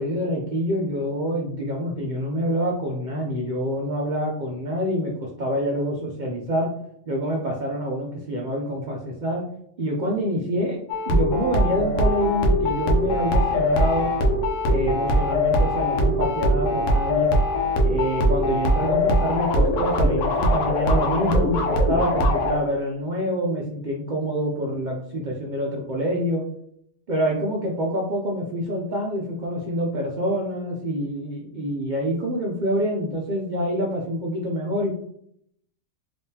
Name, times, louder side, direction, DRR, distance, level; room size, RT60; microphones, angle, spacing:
voice 1, 0.0-6.7 7.1-9.4 9.8-10.8 11.1-14.1 14.6-17.3 17.8-26.4 27.1-34.9, equal, 75° right, -1 dB, 0.4 m, -26 dB
sound 1, 10.9-22.6, equal, 70° left, 1.1 m, -21 dB
3.6 x 3.0 x 2.8 m, 0.71 s
omnidirectional pair, 1.5 m